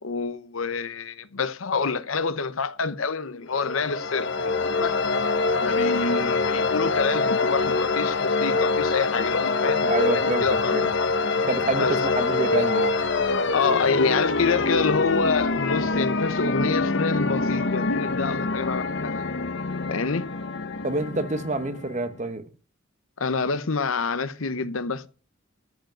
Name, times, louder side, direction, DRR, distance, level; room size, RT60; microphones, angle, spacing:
voice 1, 0.0-5.0 5.6-10.7 11.8-11.9 13.5-19.3 19.9-20.3 23.2-25.1, left 4 dB, 90° left, 0.9 m, -27 dB
sound 1, 3.5-22.2, left 3 dB, 60° left, 1.0 m, -25 dB
voice 2, 9.9-10.9 11.5-13.0 20.8-22.4, right 2 dB, 35° right, 1.2 m, -27 dB
13.5 x 5.1 x 9.2 m
head